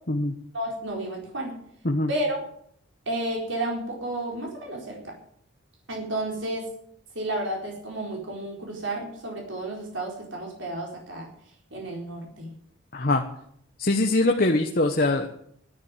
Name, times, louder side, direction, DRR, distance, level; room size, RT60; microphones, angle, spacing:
voice 1, 0.5-1.5 2.1-2.4 3.1-5.1 5.9-6.6 7.1-11.3 11.7-12.5, right 1 dB, 65° right, -1 dB, 4.4 m, -31 dB
voice 2, 12.9-13.2 13.8-15.3, left 2 dB, 45° left, 3 dB, 1.2 m, -22 dB
13.5 x 10.5 x 8.9 m, 0.67 s
head